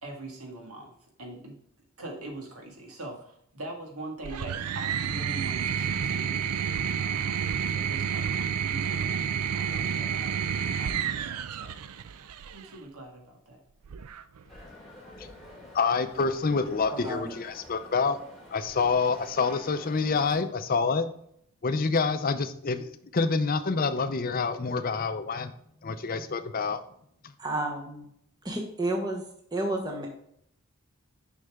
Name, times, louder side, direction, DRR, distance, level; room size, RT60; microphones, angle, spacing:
voice 1, 0.0-0.9 1.2-1.6 2.0-6.6 7.0-10.4 10.8-11.7 12.5-13.6, right 2 dB, 75° right, 1 dB, 1.8 m, -43 dB
sound 1, 4.2-12.6 13.8-14.5, right 8 dB, 90° right, 0.4 m, -30 dB
sound 2, 14.5-20.4, left 1 dB, ahead, 2.0 m, -48 dB
voice 2, 14.8-18.2 18.5-21.1 21.6-25.5 25.8-26.8 27.2-27.4, left 4 dB, 40° left, 10 dB, 0.5 m, -27 dB
voice 3, 16.9-17.3 27.4-28.1 28.4-29.2 29.5-30.1, right 1 dB, 20° right, 0 dB, 1.0 m, -31 dB
6.5 x 5.6 x 3.6 m, 0.71 s
head